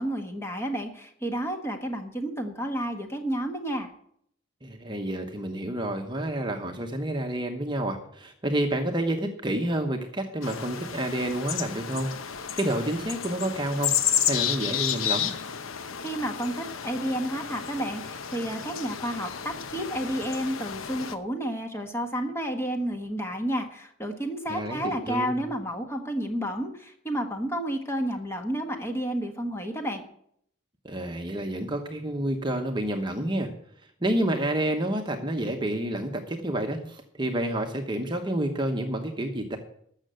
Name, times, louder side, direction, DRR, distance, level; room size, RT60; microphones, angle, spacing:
voice 1, 0.0-3.9 15.7-30.0, right 1 dB, 10° left, 4 dB, 1.4 m, -31 dB
voice 2, 4.6-12.1 12.6-13.9 14.3-15.3 24.5-25.4 30.8-33.5 34.0-39.6, right 1 dB, 20° right, 4 dB, 1.0 m, -29 dB
sound 1, 10.4-21.1, left 9 dB, 85° left, 0.9 m, -31 dB
13.5 x 6.6 x 7.7 m, 0.67 s
head